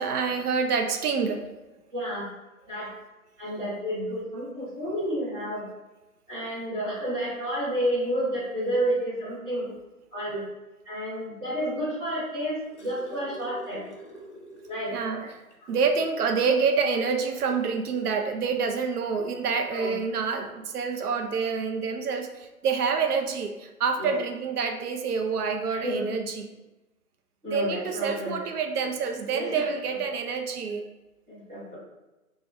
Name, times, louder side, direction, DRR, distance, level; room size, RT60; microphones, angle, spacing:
voice 1, 0.0-1.4 14.9-15.2 15.7-26.5 27.5-30.8, right 5 dB, 80° right, 5 dB, 0.5 m, -27 dB
voice 2, 1.9-2.2 2.7-2.9 3.4-5.6 6.3-9.7 10.1-10.4 10.8-13.9 14.7-14.9 15.6-15.7 19.7-19.9 24.0-24.1 25.7-26.0 27.4-28.4 29.3-29.7 31.3-31.8, equal, 10° right, -14 dB, 0.8 m, -30 dB
sound 1, 12.2-15.1 15.5-15.6 16.0-16.2 17.3-17.4, right 1 dB, 50° left, 0.9 m, -45 dB
2.9 x 2.2 x 3.2 m, 1.1 s
hypercardioid pair, 155°, 45 cm